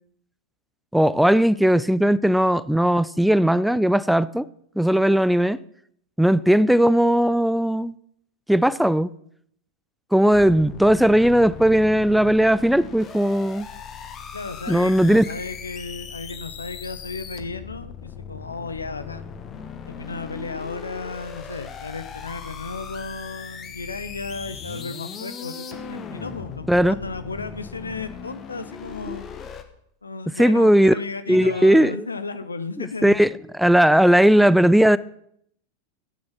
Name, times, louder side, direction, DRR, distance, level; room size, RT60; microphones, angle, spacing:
voice 1, 0.9-4.5 4.8-5.6 6.2-7.9 8.5-9.1 10.1-13.7 14.7-15.2 26.7-27.0 29.1-29.2 30.4-30.9 31.3-32.0 32.8-33.3 33.6-35.0, equal, ahead, 0.4 m, -17 dB
sound 1, 10.3-29.6, left 6 dB, 25° left, 1.4 m, -38 dB
voice 2, 14.3-19.3 19.9-29.3 30.0-33.2, left 4 dB, 75° left, 0.7 m, -34 dB
13.0 x 8.8 x 5.9 m
figure-of-eight pair, 90°, 0 cm